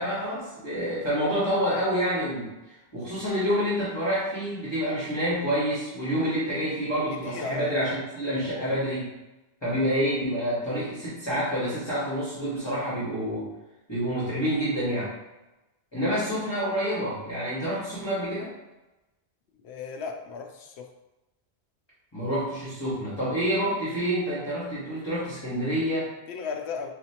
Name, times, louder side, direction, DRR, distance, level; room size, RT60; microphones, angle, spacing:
voice 1, 0.0-9.1 9.6-13.5 13.9-15.1 15.9-18.5 22.1-26.1, equal, 25° left, -10 dB, 1.4 m, -28 dB
voice 2, 7.1-7.8 19.6-20.9 26.3-26.9, left 5 dB, 75° left, 3 dB, 0.9 m, -35 dB
4.9 x 2.7 x 2.8 m, 1.0 s
omnidirectional pair, 1.1 m